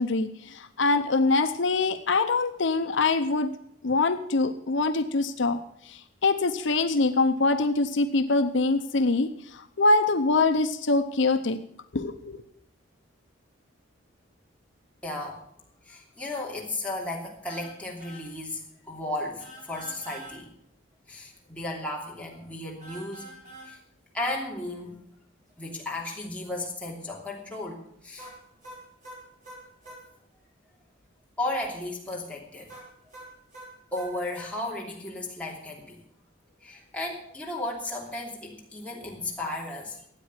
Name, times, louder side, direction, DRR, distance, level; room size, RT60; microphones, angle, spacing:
voice 1, 0.0-3.5 3.8-5.6 5.8-11.6 11.9-12.4, left 3 dB, 65° left, 8 dB, 0.7 m, -24 dB
voice 2, 15.0-15.4 15.8-20.5 21.1-23.3 23.7-23.8 24.1-25.0 25.6-28.3 29.8-30.0 31.4-32.7 33.1-33.2 33.9-36.0 36.6-40.0, left 2 dB, 5° left, -3 dB, 2.9 m, -34 dB
sound 1, 17.5-17.7 18.0-18.2 19.4-20.4 22.8-23.7 28.2-30.0 32.7-34.5, right 1 dB, 40° right, 5.5 m, -45 dB
13.5 x 8.8 x 8.1 m, 0.73 s
head